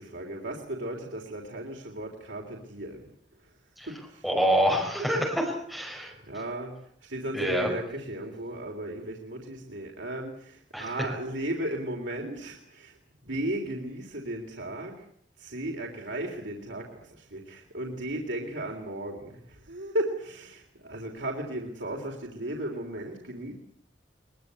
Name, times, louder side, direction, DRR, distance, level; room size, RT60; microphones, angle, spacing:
voice 1, 0.0-3.1 3.9-4.3 6.2-6.7 7.0-13.0 13.2-15.1 15.4-23.5, right 1 dB, 90° right, 0 dB, 3.5 m, -35 dB
voice 2, 4.2-6.1 7.3-7.7 10.7-10.9, equal, ahead, -1 dB, 5.5 m, -26 dB
22.5 x 21.5 x 8.4 m, 0.67 s
head